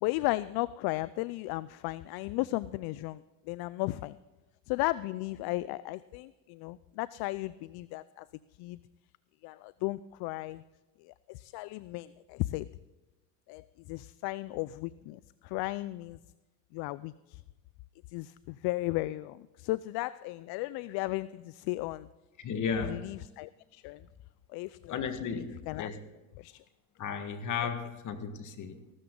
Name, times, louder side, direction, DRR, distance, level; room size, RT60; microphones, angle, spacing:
voice 1, 0.0-4.2 4.7-8.3 8.6-8.8 9.4-10.6 11.0-12.7 13.5-16.2 16.7-17.4 18.1-22.1 22.8-24.1 24.5-25.0 25.3-25.9 26.4-26.6, left 19 dB, 60° left, 0.5 m, -35 dB
voice 2, 22.4-23.1 24.9-26.0 27.0-28.9, left 6 dB, 45° left, 1.8 m, -35 dB
15.5 x 13.0 x 3.8 m
supercardioid pair, 95°, 43 cm